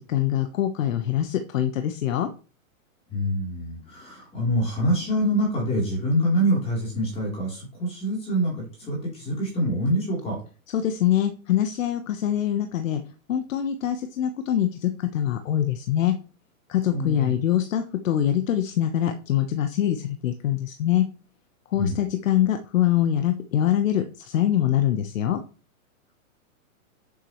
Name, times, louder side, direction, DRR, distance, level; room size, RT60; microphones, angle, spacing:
voice 1, 0.0-2.3 10.7-13.0 13.3-16.1 16.7-21.0 21.7-25.4, left 11 dB, 70° left, 7 dB, 1.1 m, -24 dB
voice 2, 3.1-10.4 16.9-17.3 21.8-22.0, equal, 15° left, -2 dB, 3.5 m, -25 dB
9.6 x 7.5 x 3.1 m, 0.36 s
hypercardioid pair, 160°, 41 cm